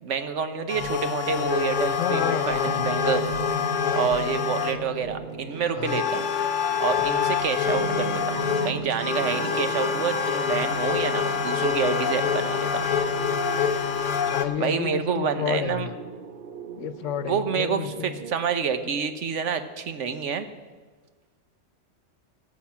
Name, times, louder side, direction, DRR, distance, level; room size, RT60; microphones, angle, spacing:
voice 1, 0.0-3.2 4.0-6.3 6.8-8.4 8.6-12.8 14.6-15.9 17.3-20.5, right 6 dB, 75° right, 9 dB, 1.2 m, -28 dB
sound 1, 0.7-4.9 5.8-14.4, left 7 dB, 45° left, 0.9 m, -26 dB
voice 2, 1.9-2.9 5.7-6.1 14.1-16.0 16.8-18.2, left 9 dB, 80° left, 13 dB, 1.0 m, -31 dB
sound 2, 2.7-18.3, right 4 dB, 55° right, 0.8 m, -38 dB
18.5 x 7.2 x 5.9 m, 1.4 s
omnidirectional pair, 1.3 m